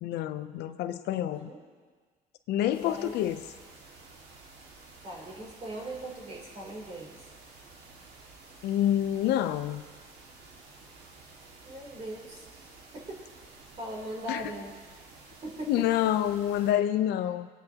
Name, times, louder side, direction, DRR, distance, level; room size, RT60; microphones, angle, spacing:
voice 1, 0.0-1.5 2.5-3.4 8.6-9.8 14.3-14.5 15.7-17.5, left 11 dB, 80° left, 11 dB, 0.6 m, -27 dB
sound 1, 2.7-16.7, right 3 dB, 80° right, 1.9 m, -52 dB
voice 2, 5.0-7.2 11.6-12.4 12.9-13.1 13.8-14.7 15.4-15.8, right 1 dB, 40° right, -2 dB, 3.3 m, -39 dB
22.0 x 9.0 x 2.9 m, 1.5 s
cardioid pair, 110°, 17 cm